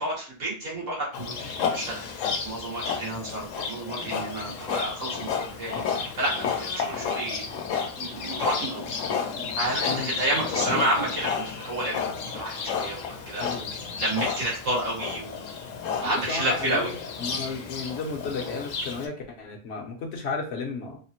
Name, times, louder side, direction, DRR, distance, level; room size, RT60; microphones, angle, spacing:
voice 1, 0.0-2.0 2.4-5.8 6.2-6.3 6.6-7.5 8.0-8.8 9.5-12.0 12.3-13.5 14.0-15.4 16.0-16.9, right 1 dB, 80° right, -6 dB, 1.7 m, -30 dB
Livestock farm animals working animals, 1.1-19.1, left 6 dB, 90° left, 1.0 m, -31 dB
voice 2, 9.9-10.3 13.4-13.7 16.0-16.9 17.2-21.0, left 4 dB, 65° left, 1 dB, 0.9 m, -33 dB
3.4 x 2.0 x 2.8 m, 0.38 s
omnidirectional pair, 1.3 m